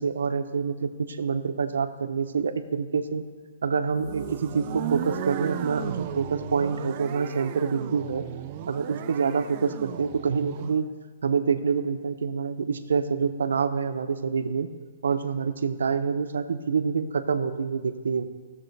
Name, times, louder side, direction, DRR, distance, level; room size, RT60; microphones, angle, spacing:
voice 1, 0.0-3.3 3.6-8.3 8.7-10.9 11.2-14.7 15.0-18.2, right 5 dB, 85° right, 9 dB, 0.7 m, -27 dB
sound 1, 3.9-10.8, right 11 dB, 30° right, 0.4 m, -35 dB
15.0 x 7.3 x 3.3 m, 1.5 s
hypercardioid pair, 165°, 0 cm